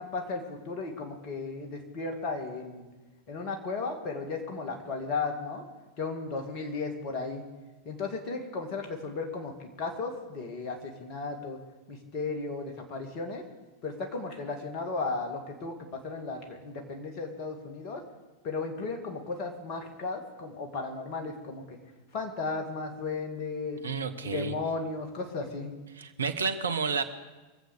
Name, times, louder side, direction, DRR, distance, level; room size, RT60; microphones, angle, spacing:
voice 1, 0.0-2.9 3.3-5.6 6.0-7.4 7.9-11.6 11.9-13.4 13.8-18.0 18.4-21.8 22.1-23.8 24.3-25.7, left 3 dB, 40° left, 4 dB, 2.3 m, -35 dB
voice 2, 23.8-24.5 26.0-27.0, right 5 dB, 70° right, 9 dB, 0.9 m, -30 dB
23.0 x 7.9 x 6.8 m, 1.2 s
figure-of-eight pair, 90°, 0 cm